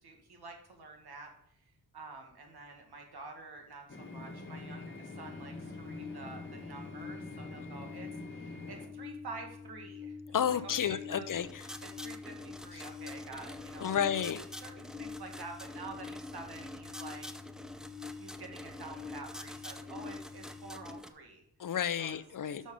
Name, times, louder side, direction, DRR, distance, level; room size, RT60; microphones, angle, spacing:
voice 1, 0.0-1.3 1.6-11.2 12.0-14.2 14.6-17.3 18.2-21.4 22.0-22.2 22.5-22.7, right 3 dB, 75° right, 2.1 m, -48 dB
sound 1, 3.9-8.9, left 2 dB, 30° left, 1.7 m, -45 dB
sound 2, 5.1-21.0, left 5 dB, 75° left, 1.3 m, -47 dB
voice 2, 10.3-11.6 13.8-14.4 21.6-22.7, left 8 dB, 55° left, 0.6 m, -31 dB
sound 3, 11.3-21.1, left 1 dB, ahead, 0.6 m, -47 dB
6.5 x 6.3 x 5.2 m
cardioid pair, 75°, 39 cm